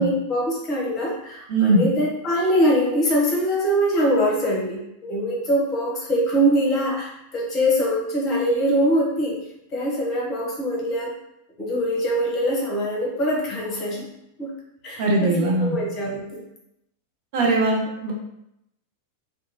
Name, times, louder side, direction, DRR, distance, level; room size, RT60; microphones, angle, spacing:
voice 1, 0.0-9.4 9.7-11.1 11.6-14.1 14.4-14.5 14.8-16.4, equal, 35° left, -3 dB, 0.9 m, -23 dB
voice 2, 1.5-1.9 15.0-15.8 17.3-18.1, right 2 dB, 50° right, -1 dB, 0.6 m, -20 dB
2.7 x 2.2 x 2.7 m, 0.82 s
figure-of-eight pair, 90°, 0 cm